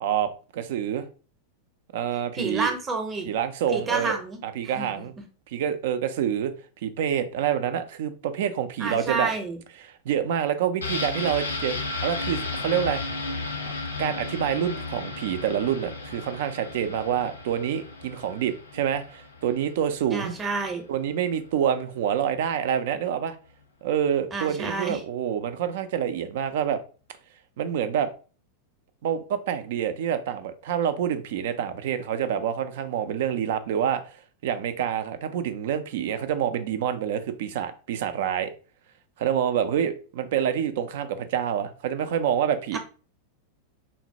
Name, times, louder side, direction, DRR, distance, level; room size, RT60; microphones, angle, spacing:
voice 1, 0.0-1.1 1.9-2.7 3.2-4.2 4.4-5.1 5.5-6.5 6.8-9.3 10.1-11.8 12.0-13.0 14.0-20.3 20.9-23.3 23.8-26.8 27.6-28.1 29.0-34.0 34.4-38.5 39.2-42.8, right 9 dB, 55° right, 0.4 m, -27 dB
voice 2, 2.3-3.3 3.7-4.4 4.7-5.2 8.8-9.6 20.1-20.8 24.3-25.0 42.7-42.8, right 3 dB, 20° right, 0.7 m, -29 dB
sound 1, 10.8-20.4 20.7-20.8, left 3 dB, 75° left, 0.5 m, -34 dB
3.8 x 2.1 x 2.7 m
figure-of-eight pair, 90°, 0 cm